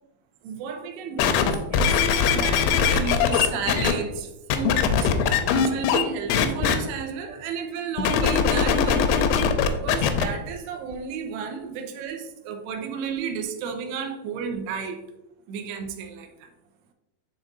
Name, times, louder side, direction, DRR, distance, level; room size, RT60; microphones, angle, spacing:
voice 1, 0.4-5.1 5.5-9.2 9.7-15.0 15.5-16.3, right 6 dB, 80° right, 5 dB, 2.5 m, -32 dB
sound 1, 1.2-3.9 4.5-6.0 6.3-6.8 8.0-10.3 10.9-11.0, left 7 dB, 90° left, 2.9 m, -21 dB
11.0 x 3.7 x 2.5 m, 0.96 s
omnidirectional pair, 5.2 m